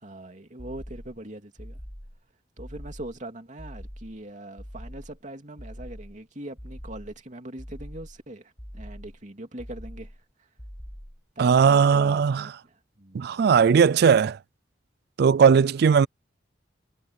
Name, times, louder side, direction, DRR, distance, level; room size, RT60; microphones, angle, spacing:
voice 1, 0.0-1.8 2.6-10.1 11.4-13.4, right 1 dB, 45° right, 2.8 m, -41 dB
sound 1, 0.6-1.2 1.6-2.2 2.6-3.2 3.6-4.2 4.6-5.2 5.6-6.2 6.6-7.2 7.6-8.2 8.6-9.2 9.6-10.2 10.6-11.2, equal, 15° left, 5.8 m, -42 dB
voice 2, 11.4-12.4 13.1-14.4 15.2-16.1, right 6 dB, 60° right, 0.3 m, -18 dB
head